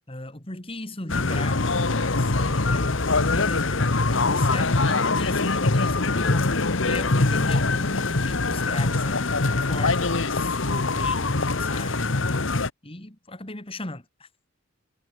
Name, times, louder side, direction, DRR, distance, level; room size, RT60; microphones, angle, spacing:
voice 1, 0.1-12.5 12.8-14.3, left 2 dB, 25° left, 2.4 m, -37 dB
sound 1, 1.1-12.7, left 3 dB, 65° left, 1.4 m, -23 dB
head